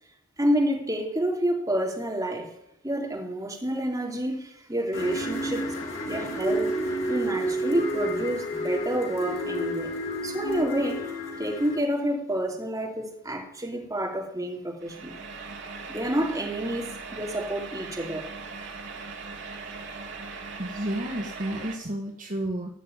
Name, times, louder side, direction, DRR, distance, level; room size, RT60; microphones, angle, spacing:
voice 1, 0.4-2.5 2.8-5.6 6.1-6.8 7.1-9.9 10.2-11.1 11.4-15.2 15.9-18.3, right 1 dB, 15° right, 2.9 m, -29 dB
sound 1, 4.9-11.7, equal, 70° left, 5.6 m, -30 dB
sound 2, 14.8-21.8, right 4 dB, 60° right, 2.2 m, -39 dB
voice 2, 20.6-22.7, right 1 dB, 40° right, 1.6 m, -31 dB
17.5 x 6.7 x 9.2 m
head